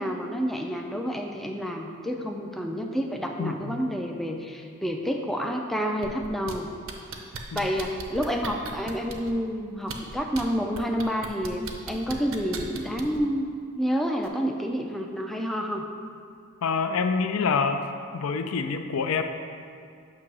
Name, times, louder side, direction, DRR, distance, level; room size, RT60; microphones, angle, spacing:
voice 1, 0.0-6.7 7.5-13.5 13.7-15.8, equal, ahead, 2 dB, 0.3 m, -29 dB
voice 2, 3.4-3.8 7.5-7.7 16.6-17.9 18.1-19.2, left 5 dB, 70° left, 7 dB, 0.4 m, -26 dB
sound 1, 6.0-6.5 6.9-9.3 9.8-10.4 10.7-13.2 14.2-14.3, right 4 dB, 65° right, 0.6 m, -37 dB
7.5 x 2.9 x 6.0 m, 2.4 s
head